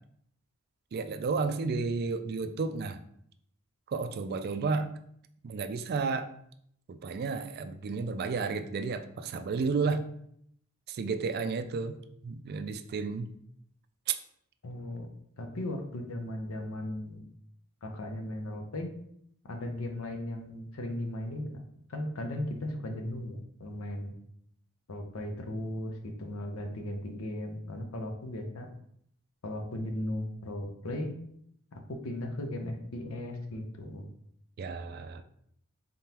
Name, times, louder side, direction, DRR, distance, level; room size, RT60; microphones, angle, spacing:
voice 1, 0.9-3.0 3.9-4.9 5.4-6.3 6.9-10.0 10.9-12.0 12.2-13.3 14.1-14.2 34.6-35.2, right 4 dB, 45° right, 10 dB, 0.3 m, -32 dB
voice 2, 14.6-15.1 15.4-17.2 17.8-18.9 19.4-21.6 21.9-24.1 24.9-28.7 29.4-31.1 31.7-34.0, left 1 dB, 75° left, 3 dB, 0.7 m, -37 dB
3.7 x 3.6 x 2.9 m, 0.69 s
head